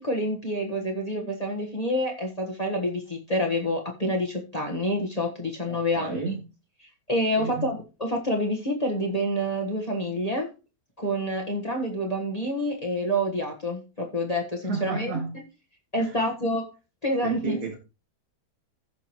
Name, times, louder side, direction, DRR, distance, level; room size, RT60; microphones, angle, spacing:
voice 1, 0.0-6.2 7.1-10.5 11.0-15.1 15.9-16.7 17.0-17.8, equal, 25° left, 0 dB, 1.4 m, -27 dB
voice 2, 5.7-6.5 7.4-7.8 14.6-15.4 16.0-16.2 17.2-17.8, right 4 dB, 85° right, 1 dB, 2.1 m, -32 dB
15.0 x 6.0 x 3.0 m, 0.31 s
omnidirectional pair, 1.6 m